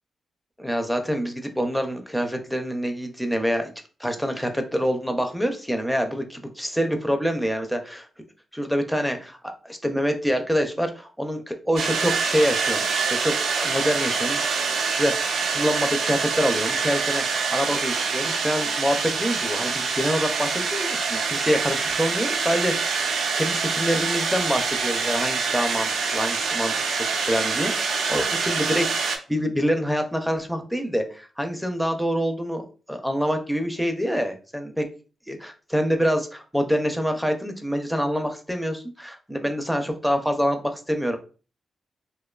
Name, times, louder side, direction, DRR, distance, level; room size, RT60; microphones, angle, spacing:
voice 1, 0.6-3.7 4.0-8.1 8.5-23.0 23.4-34.8 35.3-41.2, equal, ahead, 5 dB, 0.4 m, -26 dB
sound 1, 11.8-29.2, right 5 dB, 85° right, 0.4 m, -25 dB
2.6 x 2.2 x 2.3 m, 0.37 s
cardioid pair, 85°, 0 cm